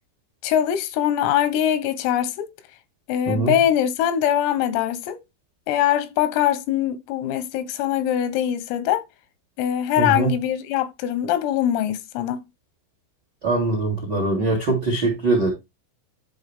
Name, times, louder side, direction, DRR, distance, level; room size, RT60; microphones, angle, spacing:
voice 1, 0.4-2.5 3.1-5.2 5.7-9.0 9.6-12.4, left 11 dB, 90° left, 3.6 m, -22 dB
voice 2, 10.0-10.3 13.4-15.5, right 2 dB, 90° right, 0.9 m, -22 dB
11.0 x 4.2 x 3.4 m
omnidirectional pair, 6.0 m